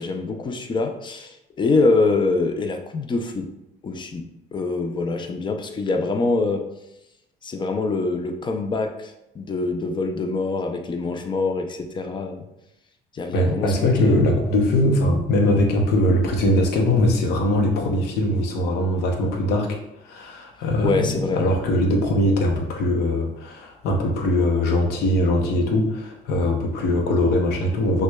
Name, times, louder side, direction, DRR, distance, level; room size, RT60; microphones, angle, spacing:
voice 1, 0.0-3.5 3.8-4.3 4.5-6.6 7.4-12.4 13.1-14.3 20.8-21.4, left 3 dB, 30° left, 5 dB, 0.5 m, -24 dB
voice 2, 13.3-19.8 20.0-28.0, left 1 dB, 75° left, 2 dB, 0.7 m, -21 dB
6.0 x 2.2 x 2.3 m, 0.86 s
cardioid pair, 110°, 17 cm